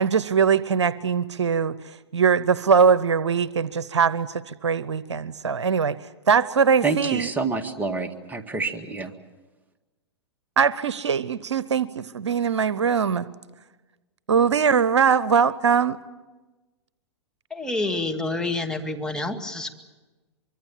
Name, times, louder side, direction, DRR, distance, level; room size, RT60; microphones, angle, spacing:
voice 1, 0.0-1.7 2.1-6.0 6.3-7.3 10.6-13.3 14.3-16.0, right 6 dB, 85° right, 17 dB, 0.7 m, -21 dB
voice 2, 6.8-9.1, right 4 dB, 10° right, 6 dB, 2.0 m, -27 dB
voice 3, 17.5-19.7, left 2 dB, 5° left, 3 dB, 2.2 m, -28 dB
24.5 x 24.0 x 7.4 m, 1.2 s
hypercardioid pair, 115°, 14 cm